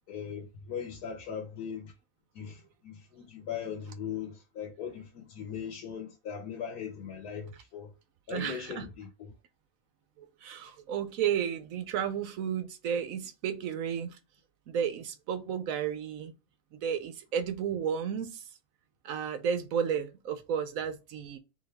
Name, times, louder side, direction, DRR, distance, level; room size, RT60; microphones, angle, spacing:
voice 1, 0.1-1.9 2.3-7.9 8.3-9.1, left 7 dB, 75° left, 1.5 m, -39 dB
voice 2, 8.3-8.9 10.2-14.2 14.7-16.3 16.7-18.5 19.0-21.4, right 8 dB, 70° right, 0.9 m, -32 dB
4.0 x 3.4 x 3.3 m
omnidirectional pair, 1.7 m